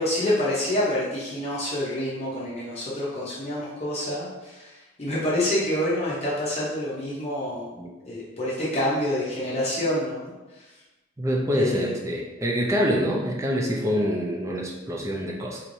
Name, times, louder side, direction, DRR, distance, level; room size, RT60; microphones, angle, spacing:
voice 1, 0.0-4.7 5.0-7.7 8.1-10.3 10.6-10.7 11.5-11.9, left 1 dB, 30° left, -7 dB, 0.7 m, -27 dB
voice 2, 11.2-15.6, equal, 15° right, 0 dB, 0.3 m, -26 dB
4.2 x 3.1 x 2.6 m, 1.1 s
head